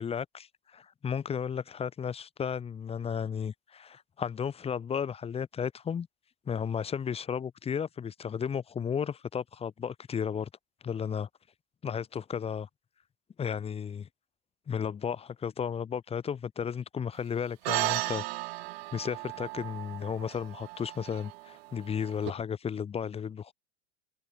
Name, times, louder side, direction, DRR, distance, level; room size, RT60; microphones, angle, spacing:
voice 1, 0.0-6.1 6.5-10.5 10.8-11.3 11.8-12.7 13.4-14.1 14.7-18.2 18.9-23.5, left 7 dB, 15° left, 7.9 m, -34 dB
sound 1, 17.6-22.3, right 20 dB, 55° right, 4.7 m, -35 dB
supercardioid pair, 165°, 37 cm